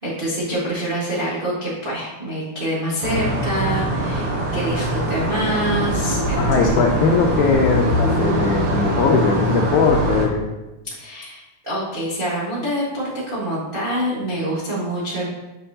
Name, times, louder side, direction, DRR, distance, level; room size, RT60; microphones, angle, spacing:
voice 1, 0.0-6.7 10.9-15.3, right 1 dB, 55° right, -8 dB, 0.5 m, -26 dB
sound 1, 3.0-10.3, right 1 dB, 90° right, 1.0 m, -22 dB
voice 2, 6.4-10.4, left 4 dB, 80° left, 0 dB, 1.9 m, -19 dB
6.7 x 5.7 x 2.8 m, 1.0 s
omnidirectional pair, 3.6 m